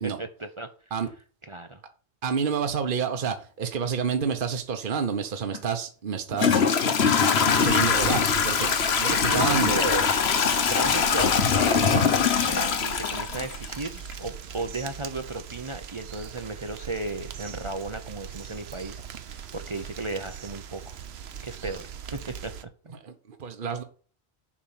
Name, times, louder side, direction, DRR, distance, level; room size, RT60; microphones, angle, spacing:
voice 1, 0.0-0.7 1.4-1.8 9.1-10.1 10.7-21.0 21.4-21.8 22.1-22.5 22.9-23.0, right 2 dB, 30° right, 0.7 m, -35 dB
voice 2, 2.2-6.6 7.5-9.8 23.0-23.8, right 6 dB, 55° right, 1.1 m, -29 dB
Toilet flush / Trickle dribble, 5.5-5.6 6.3-14.1, left 6 dB, 75° left, 1.2 m, -22 dB
sound 1, 7.5-22.6, right 8 dB, 75° right, 1.0 m, -40 dB
7.4 x 5.4 x 7.2 m
omnidirectional pair, 1.1 m